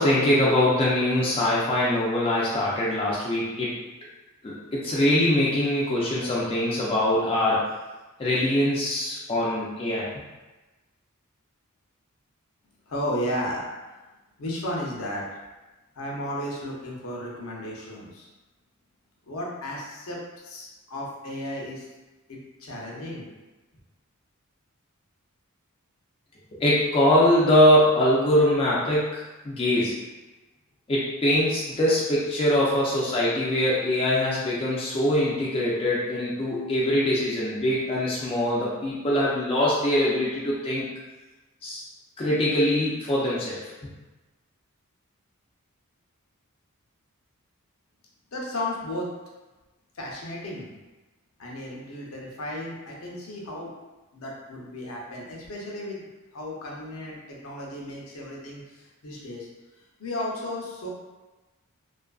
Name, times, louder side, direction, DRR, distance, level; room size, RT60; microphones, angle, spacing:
voice 1, 0.0-3.7 4.4-7.6 8.2-10.1 26.5-29.9 30.9-40.9 41.6-41.8 42.2-43.6, left 1 dB, 25° left, -7 dB, 0.4 m, -23 dB
voice 2, 12.9-13.7 14.4-15.2 16.0-18.3 19.3-20.2 20.4-21.8 22.3-23.2 48.3-49.1 50.0-50.7 51.4-53.7 54.1-56.1 56.3-59.5 60.0-60.9, left 1 dB, 65° left, -3 dB, 0.6 m, -34 dB
2.6 x 2.4 x 2.3 m, 1.1 s
head